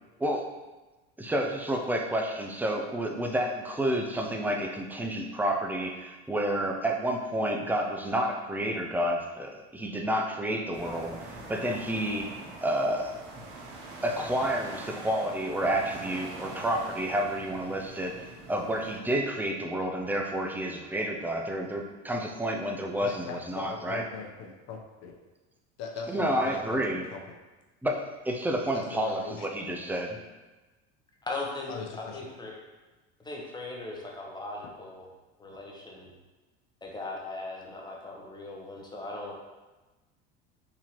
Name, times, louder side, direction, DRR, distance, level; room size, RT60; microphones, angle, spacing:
voice 1, 1.2-12.3 12.6-13.1 14.0-24.0 26.1-27.1 27.8-30.2, right 1 dB, 5° right, 2 dB, 0.4 m, -30 dB
sound 1, 10.7-19.0, right 2 dB, 70° right, 1.0 m, -44 dB
voice 2, 23.0-25.1 25.8-27.2 28.7-29.9 31.7-32.2, left 5 dB, 55° left, 1 dB, 0.8 m, -40 dB
voice 3, 31.2-31.7 32.0-32.6 33.2-35.1 35.4-36.1 36.8-39.4, left 2 dB, 15° left, -2 dB, 0.8 m, -39 dB
4.0 x 2.8 x 3.0 m, 1.2 s
supercardioid pair, 90°, 33 cm